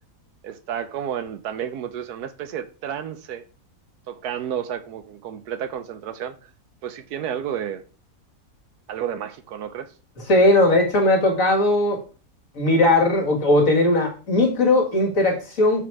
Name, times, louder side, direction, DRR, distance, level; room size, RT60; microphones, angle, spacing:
voice 1, 0.4-3.4 4.1-6.3 6.8-7.8 8.9-9.9, right 9 dB, 75° right, 1.1 m, -31 dB
voice 2, 10.3-12.0 12.6-15.9, left 2 dB, 55° left, 2.0 m, -18 dB
6.1 x 4.5 x 4.6 m
omnidirectional pair, 1.7 m